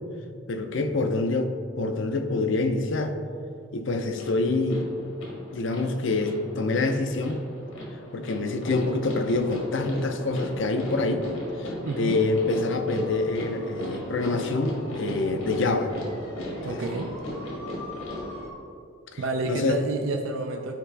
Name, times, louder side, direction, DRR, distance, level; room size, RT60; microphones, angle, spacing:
voice 1, 0.5-3.1 3.7-4.9 5.5-7.4 8.1-11.3 11.6-15.9 16.6-16.8 19.1-19.2 19.5-19.8, left 3 dB, 65° left, 7 dB, 0.6 m, -26 dB
sound 1, 4.2-18.5, left 1 dB, 80° left, 1.7 m, -37 dB
voice 2, 11.8-12.2 16.6-17.2 19.2-20.8, right 3 dB, 75° right, 3 dB, 0.5 m, -30 dB
12.0 x 4.8 x 3.4 m, 2.4 s
head